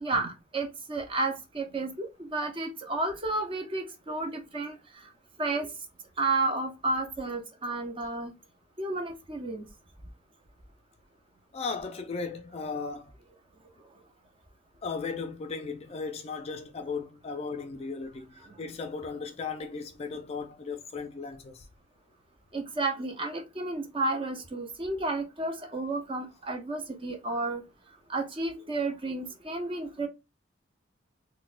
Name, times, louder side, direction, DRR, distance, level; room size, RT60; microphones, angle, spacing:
voice 1, 0.0-5.1 5.4-5.7 6.2-8.3 8.8-9.7 18.4-18.6 22.5-27.6 28.1-30.1, right 2 dB, 25° right, 0.5 m, -32 dB
voice 2, 11.5-13.1 14.8-21.7, left 4 dB, 30° left, 0.3 m, -36 dB
3.9 x 2.1 x 2.4 m
head